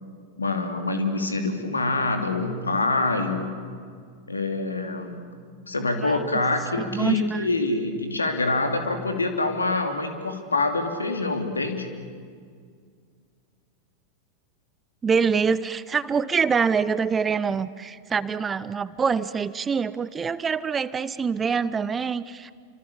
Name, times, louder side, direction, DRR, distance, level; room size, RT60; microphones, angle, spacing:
voice 1, 0.4-3.5 4.3-5.2 5.7-11.9, left 2 dB, 80° left, 5 dB, 2.7 m, -25 dB
voice 2, 5.9-6.3 6.8-7.5 15.0-22.5, right 6 dB, 20° right, 17 dB, 0.7 m, -25 dB
28.5 x 25.5 x 6.9 m, 2.1 s
figure-of-eight pair, 90°, 0 cm